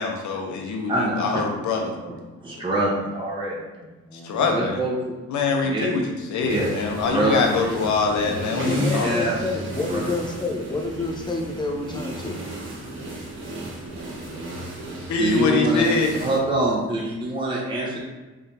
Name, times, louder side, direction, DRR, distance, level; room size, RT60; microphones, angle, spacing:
voice 1, 0.0-2.0 4.2-4.8 5.3-6.0 6.3-9.1 15.1-16.1, left 4 dB, 70° left, 2 dB, 0.8 m, -24 dB
voice 2, 0.9-1.2 1.7-2.1 2.4-3.5 4.5-5.2 5.6-5.9 6.4-7.7 8.9-9.4 9.9-10.0 15.2-18.0, right 1 dB, 15° right, -6 dB, 1.1 m, -25 dB
voice 3, 3.6-4.7 8.5-12.4, left 3 dB, 15° left, 1 dB, 0.7 m, -30 dB
sound 1, 6.5-16.4, right 1 dB, 40° right, 1.2 m, -33 dB
3.7 x 3.4 x 2.8 m, 1.2 s
cardioid pair, 90°, 30 cm